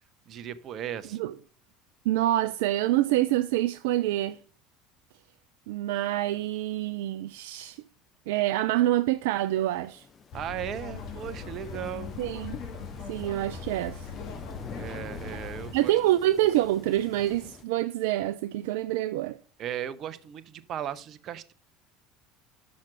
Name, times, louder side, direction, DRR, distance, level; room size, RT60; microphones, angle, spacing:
voice 1, 0.3-1.2 10.3-12.1 14.8-16.0 19.6-21.5, right 10 dB, 50° right, 0.7 m, -36 dB
voice 2, 2.1-4.4 5.7-7.8 8.3-10.1 12.2-12.6 13.1-14.1 15.7-19.4, right 14 dB, 70° right, 0.3 m, -26 dB
sound 1, 8.7-17.6, left 5 dB, 30° left, 0.7 m, -48 dB
sound 2, 10.3-15.7, left 5 dB, 55° left, 1.7 m, -40 dB
6.3 x 5.9 x 5.8 m
hypercardioid pair, 70°, 0 cm